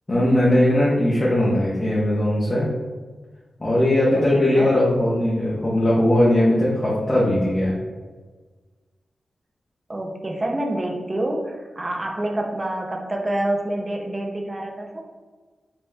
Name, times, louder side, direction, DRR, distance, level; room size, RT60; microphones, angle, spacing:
voice 1, 0.1-2.7 3.6-7.8, left 1 dB, 20° left, -8 dB, 0.8 m, -19 dB
voice 2, 4.1-4.8 9.9-15.0, right 1 dB, 25° right, 1 dB, 0.5 m, -27 dB
5.2 x 2.9 x 2.3 m, 1.4 s
wide cardioid pair, 155°, 0 cm